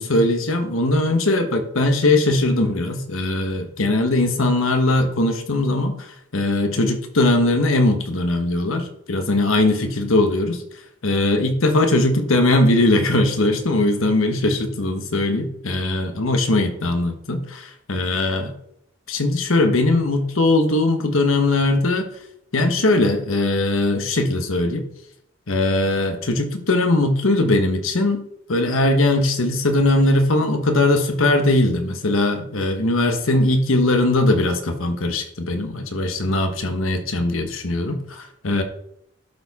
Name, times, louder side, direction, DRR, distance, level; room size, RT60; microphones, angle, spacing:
voice 1, 0.0-6.0 6.3-10.6 11.0-18.5 19.1-22.1 22.5-24.8 25.5-28.2 28.5-38.6, left 2 dB, 80° left, 6 dB, 1.2 m, -20 dB
12.0 x 4.5 x 4.1 m, 0.74 s
head